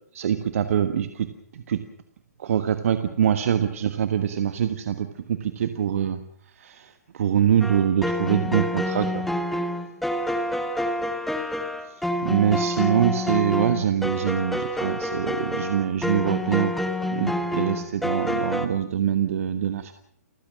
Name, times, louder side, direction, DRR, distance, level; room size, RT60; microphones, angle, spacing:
voice 1, 0.1-1.3 1.5-1.8 2.4-6.2 6.6-9.3 12.2-16.7 17.1-19.9, right 9 dB, 55° right, 9 dB, 1.4 m, -24 dB
sound 1, 7.6-18.7, left 1 dB, ahead, 1.7 m, -27 dB
29.5 x 15.5 x 6.2 m, 0.68 s
figure-of-eight pair, 130°, 9 cm